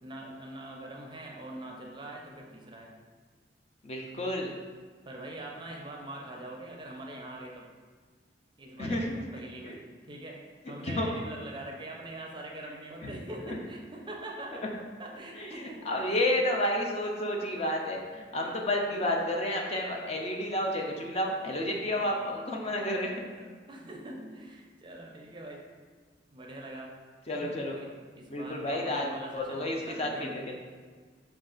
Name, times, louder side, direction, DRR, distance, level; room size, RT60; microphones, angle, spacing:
voice 1, 0.0-2.9 5.0-7.7 8.6-9.8 10.1-14.6 15.0-16.3 17.5-17.6 18.4-19.0 21.8-22.2 23.3-25.7 26.3-26.9 27.3-30.5, right 1 dB, 25° right, 0 dB, 0.5 m, -43 dB
voice 2, 3.8-4.5 8.8-9.2 9.6-9.8 10.8-11.2 13.0-13.1 15.4-23.1 23.4-23.5 27.3-27.8 28.3-29.1 29.3-30.6, left 1 dB, 35° left, 0 dB, 0.5 m, -31 dB
5.1 x 2.3 x 3.8 m, 1.5 s
head